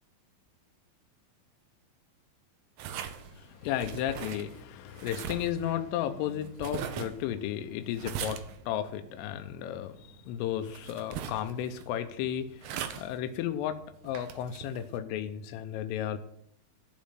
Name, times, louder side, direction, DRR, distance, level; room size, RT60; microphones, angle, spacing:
sound 1, 2.8-15.0, right 9 dB, 75° right, 2.3 m, -42 dB
voice 1, 3.3-12.7 13.0-16.2, left 10 dB, 90° left, 8 dB, 3.4 m, -34 dB
15.0 x 5.2 x 8.8 m, 0.75 s
omnidirectional pair, 5.6 m